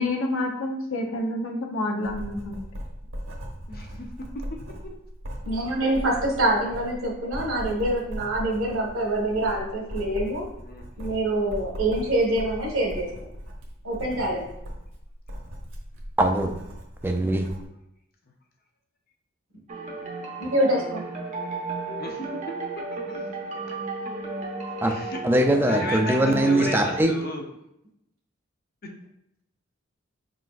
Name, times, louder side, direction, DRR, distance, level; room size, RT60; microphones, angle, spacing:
voice 1, 0.0-2.5, left 2 dB, 80° left, 1 dB, 0.8 m, -28 dB
Writing, 2.0-17.6, equal, 70° right, 1.1 m, -38 dB
voice 2, 3.7-4.1 4.5-4.6 10.6-10.9 22.0-23.8 24.9-25.2 25.7-27.4 28.8-28.9, left 2 dB, 45° left, 1 dB, 0.7 m, -35 dB
voice 3, 5.4-10.4 11.0-13.1 13.8-14.4 20.4-21.0, right 1 dB, 90° right, -2 dB, 1.5 m, -25 dB
voice 4, 16.2-16.5 17.0-17.5 24.8-24.9 25.2-27.1, right 1 dB, 10° right, 3 dB, 0.4 m, -21 dB
sound 1, 19.7-27.0, right 3 dB, 35° right, 0.7 m, -33 dB
5.5 x 3.9 x 2.5 m, 0.81 s
head